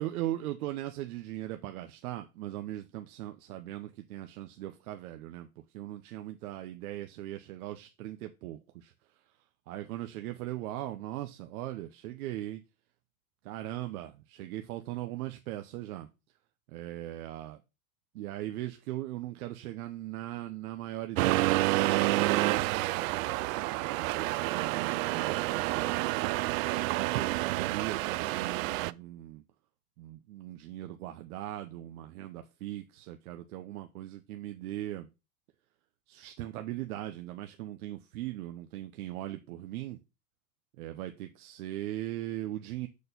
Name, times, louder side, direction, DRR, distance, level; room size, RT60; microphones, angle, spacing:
voice 1, 0.0-9.3 9.7-12.6 13.4-16.1 16.7-17.6 18.1-23.1 23.8-25.9 26.6-29.4 30.0-35.1 36.1-40.0 40.8-42.9, right 14 dB, 85° right, 0.9 m, -39 dB
Accelerating revving vroom, 21.2-28.9, right 18 dB, 65° right, 0.5 m, -29 dB
6.6 x 4.4 x 5.2 m
supercardioid pair, 160°, 43 cm